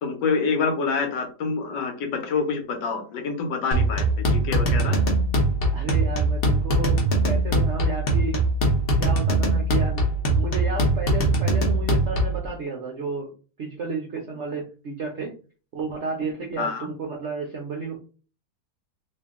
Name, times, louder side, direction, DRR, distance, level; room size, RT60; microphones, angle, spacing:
voice 1, 0.0-5.0 16.6-16.9, left 5 dB, 80° left, 5 dB, 1.4 m, -27 dB
sound 1, 3.7-12.4, right 1 dB, 50° left, 0.7 m, -22 dB
voice 2, 5.7-8.4 9.0-13.3 13.6-15.3 15.7-18.0, right 4 dB, 70° right, 1 dB, 0.6 m, -32 dB
2.9 x 2.7 x 3.5 m, 0.37 s
omnidirectional pair, 1.9 m